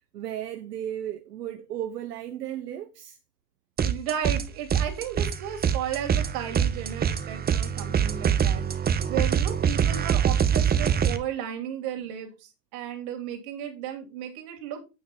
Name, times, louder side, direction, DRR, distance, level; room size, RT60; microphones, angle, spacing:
voice 1, 0.1-3.2, right 11 dB, 85° right, 0.9 m, -35 dB
sound 1, 3.8-4.4 4.7-11.2, right 8 dB, 20° right, 0.8 m, -24 dB
voice 2, 3.8-14.8, right 9 dB, 60° right, 2.9 m, -34 dB
8.9 x 5.0 x 4.2 m
hypercardioid pair, 90°, 47 cm